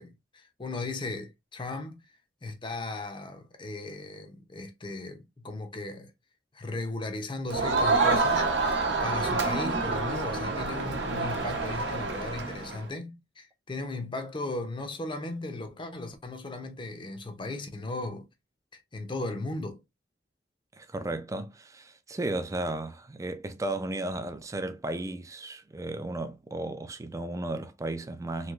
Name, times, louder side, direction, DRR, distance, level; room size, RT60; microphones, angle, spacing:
voice 1, 0.0-2.0 2.4-6.1 6.5-18.3 18.9-19.8, left 2 dB, 30° left, 0.6 m, -37 dB
Crowd, 7.5-12.8, right 3 dB, 80° right, 0.8 m, -27 dB
voice 2, 20.8-28.5, right 2 dB, 20° right, 0.4 m, -34 dB
3.2 x 2.9 x 2.4 m
head